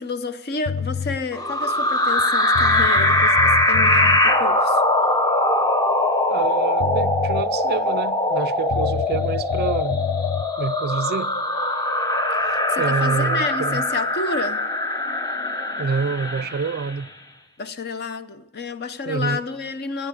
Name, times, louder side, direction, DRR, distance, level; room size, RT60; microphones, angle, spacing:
voice 1, 0.0-4.8 12.3-14.7 17.6-20.1, left 4 dB, 50° left, 0.7 m, -30 dB
sound 1, 0.7-1.2 2.2-2.3 2.5-4.2 6.4-6.5 6.8-7.5 8.7-10.5, left 6 dB, 85° left, 0.5 m, -27 dB
sound 2, 1.3-17.0, left 1 dB, 20° left, 0.8 m, -21 dB
voice 2, 6.3-10.0 10.6-11.3 12.8-13.8 15.8-17.1 19.1-19.4, right 5 dB, 50° right, 0.4 m, -27 dB
16.0 x 10.5 x 8.4 m
head